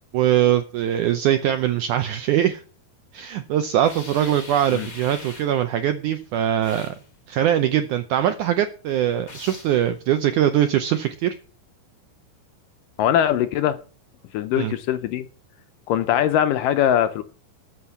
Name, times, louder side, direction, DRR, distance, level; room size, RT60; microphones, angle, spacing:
voice 1, 0.1-2.6 3.1-6.9 7.3-11.3 14.5-14.7, right 11 dB, 80° right, 9 dB, 1.7 m, -22 dB
sound 1, 3.8-5.6 6.6-7.1 9.3-9.8, left 3 dB, 25° left, 2.3 m, -41 dB
voice 2, 13.0-13.8 14.3-15.3 15.9-17.2, left 10 dB, 75° left, 11 dB, 2.0 m, -21 dB
13.5 x 6.4 x 7.1 m, 0.39 s
omnidirectional pair, 4.4 m